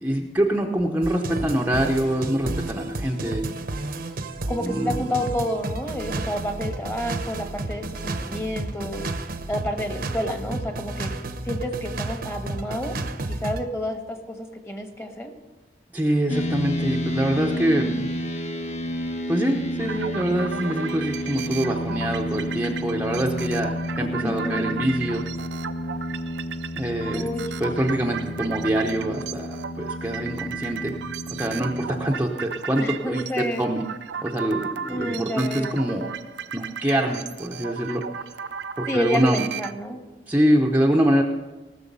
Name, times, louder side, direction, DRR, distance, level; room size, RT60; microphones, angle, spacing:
voice 1, 0.0-3.4 4.6-5.2 15.9-18.1 19.3-25.3 26.8-27.3 27.6-31.0 31.3-33.8 34.2-36.1 36.5-38.0 38.8-39.5 40.3-41.2, right 1 dB, 10° right, 0 dB, 0.8 m, -24 dB
sound 1, 1.0-13.6, right 2 dB, 55° right, 0.9 m, -31 dB
voice 2, 4.5-9.0 9.5-11.1 11.4-13.0 13.3-15.3 24.2-24.7 27.1-27.5 32.8-33.7 34.9-35.8 38.9-40.0, equal, 15° left, 4 dB, 1.4 m, -29 dB
sound 2, 16.3-32.1, equal, 40° left, 1.1 m, -31 dB
sound 3, 19.8-39.7, right 7 dB, 75° right, 0.6 m, -35 dB
18.0 x 6.9 x 5.4 m, 1.1 s
head